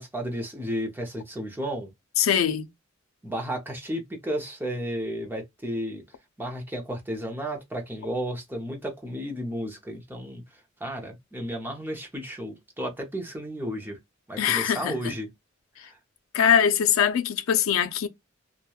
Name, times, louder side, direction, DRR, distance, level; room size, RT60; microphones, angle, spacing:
voice 1, 0.0-1.9 3.2-6.0 6.4-10.4 10.8-14.0 14.3-15.3 15.8-16.0, equal, 10° right, 0.6 m, -33 dB
voice 2, 2.2-2.7 14.4-15.1 16.3-18.1, left 8 dB, 85° left, 0.4 m, -22 dB
2.9 x 2.2 x 2.3 m
head